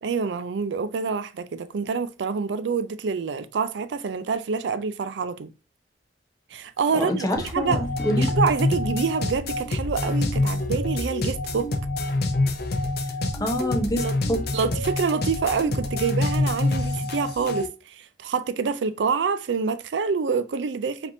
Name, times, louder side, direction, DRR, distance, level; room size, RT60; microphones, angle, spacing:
voice 1, 0.0-5.5 6.5-7.8 8.2-11.7 14.0-14.1 14.5-21.1, right 5 dB, 75° right, 0.4 m, -27 dB
voice 2, 6.9-8.3 13.4-14.4, equal, 20° left, 0.7 m, -26 dB
sound 1, 7.4-17.7, left 2 dB, 60° left, 0.6 m, -26 dB
5.1 x 2.9 x 2.7 m
head